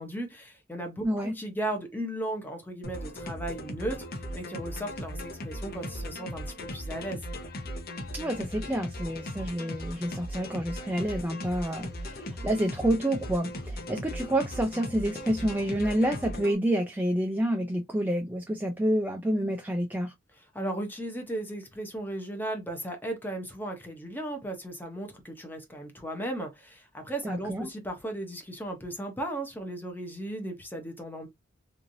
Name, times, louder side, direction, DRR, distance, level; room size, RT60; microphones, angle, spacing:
voice 1, 0.0-7.2 20.5-31.3, right 1 dB, 10° left, 0.8 m, -36 dB
voice 2, 1.0-1.4 8.1-20.1 27.2-27.7, right 1 dB, 10° right, 0.4 m, -28 dB
sound 1, 2.8-16.6, left 1 dB, 50° left, 0.7 m, -38 dB
3.1 x 2.5 x 2.6 m
head